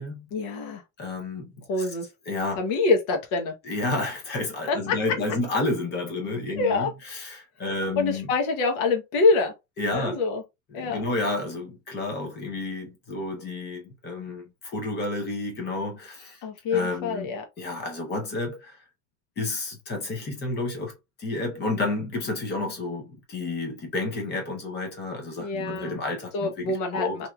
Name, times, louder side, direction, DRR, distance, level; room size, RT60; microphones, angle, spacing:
voice 1, 0.3-0.8 1.7-2.1 2.6-3.5 4.7-4.9 6.6-6.9 8.0-9.5 9.9-10.4 10.7-11.0 16.4-17.4 25.4-26.0 26.3-27.3, left 3 dB, 70° left, 1.1 m, -25 dB
voice 2, 1.0-1.9 2.3-2.6 3.6-8.3 9.8-10.2 10.7-16.4 16.7-18.8 19.4-27.2, left 2 dB, 25° left, 0.7 m, -31 dB
3.0 x 2.7 x 2.3 m
cardioid pair, 175°, 42 cm